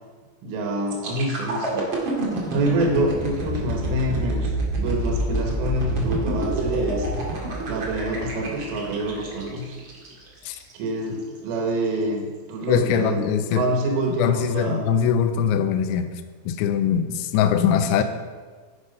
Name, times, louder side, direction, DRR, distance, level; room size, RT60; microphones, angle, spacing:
voice 1, 0.4-1.9 2.5-7.1 7.7-9.8 10.7-12.2 12.5-14.9 17.9-18.0, right 1 dB, 90° right, 2 dB, 3.8 m, -26 dB
sound 1, 0.9-10.7 11.2-11.4, right 1 dB, 45° right, 1.5 m, -28 dB
voice 2, 12.7-13.7 14.1-16.1 16.5-18.0, left 8 dB, 85° left, 8 dB, 3.0 m, -22 dB
10.5 x 8.4 x 5.4 m, 1.5 s
omnidirectional pair, 5.5 m